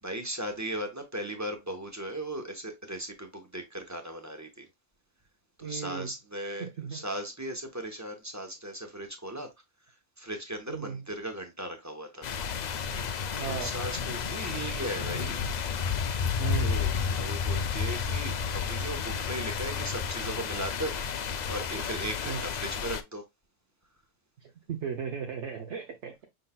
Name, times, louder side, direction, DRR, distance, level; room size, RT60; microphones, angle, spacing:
voice 1, 0.0-4.7 5.6-9.5 9.8-12.3 13.4-15.4 16.6-23.3, right 1 dB, 15° right, 0.7 m, -37 dB
voice 2, 5.6-6.1 6.6-7.0 10.7-11.0 13.4-13.7 16.4-16.7 22.3-22.4 24.4-26.3, right 7 dB, 65° right, 1.0 m, -36 dB
sound 1, 12.2-23.0, left 6 dB, 90° left, 0.3 m, -31 dB
5.5 x 3.8 x 2.2 m
omnidirectional pair, 1.4 m